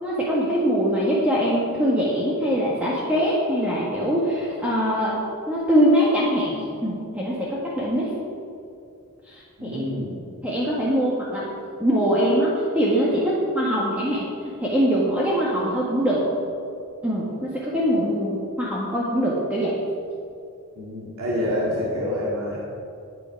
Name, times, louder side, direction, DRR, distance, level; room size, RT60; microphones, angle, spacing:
voice 1, 0.0-5.2 5.5-8.1 9.3-9.8 10.4-11.5 11.8-16.3 17.0-19.8, equal, 5° right, -7 dB, 1.6 m, -23 dB
voice 2, 9.6-10.3 20.8-22.6, left 1 dB, 80° right, -6 dB, 2.3 m, -27 dB
12.0 x 9.2 x 5.9 m, 2.5 s
head